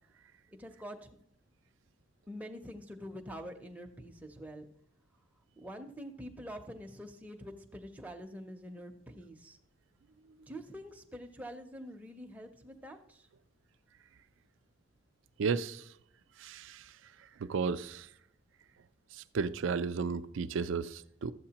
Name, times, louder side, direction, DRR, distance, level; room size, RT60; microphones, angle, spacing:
voice 1, 0.6-1.1 2.3-4.7 5.6-9.6 10.5-13.3, equal, 5° right, 0.5 m, -46 dB
voice 2, 15.4-15.9 16.4-16.9 17.4-18.1 19.1-21.3, right 5 dB, 60° right, 0.4 m, -34 dB
12.5 x 7.8 x 2.9 m
head